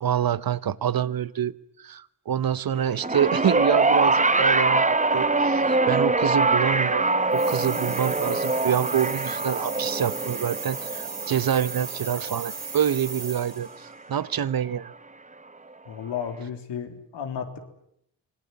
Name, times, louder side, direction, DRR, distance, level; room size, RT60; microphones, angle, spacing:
voice 1, 0.0-1.5 1.8-7.1 7.3-14.9, right 9 dB, 55° right, 17 dB, 1.1 m, -26 dB
sound 1, 2.7-8.6, left 3 dB, 25° left, 1.6 m, -43 dB
sound 2, 3.0-13.5 14.5-14.6, right 3 dB, 20° right, 1.1 m, -24 dB
sound 3, 7.3-13.8, right 4 dB, 35° right, 5.5 m, -36 dB
voice 2, 15.9-17.6, left 8 dB, 90° left, 5 dB, 3.6 m, -33 dB
26.0 x 19.5 x 9.6 m, 0.74 s
cardioid pair, 60°, 41 cm